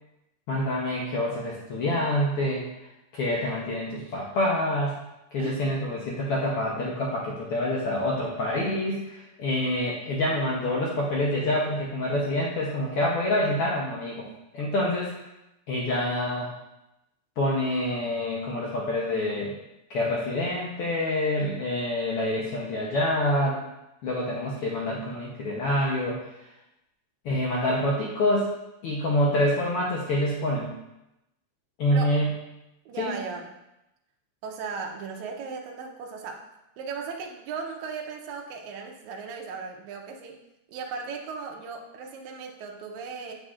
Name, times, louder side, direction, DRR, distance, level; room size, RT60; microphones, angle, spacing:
voice 1, 0.5-2.6 3.1-5.0 5.3-14.2 14.5-15.1 15.7-16.5 17.4-19.5 19.9-23.6 24.0-26.2 27.2-28.5 28.8-30.7 31.8-32.3 33.0-33.2, left 1 dB, 70° left, -4 dB, 1.4 m, -26 dB
voice 2, 32.9-33.5 34.4-36.4 36.8-40.4 40.7-43.3, right 5 dB, 75° right, 1 dB, 2.0 m, -37 dB
7.3 x 6.4 x 2.4 m, 0.90 s
omnidirectional pair, 3.5 m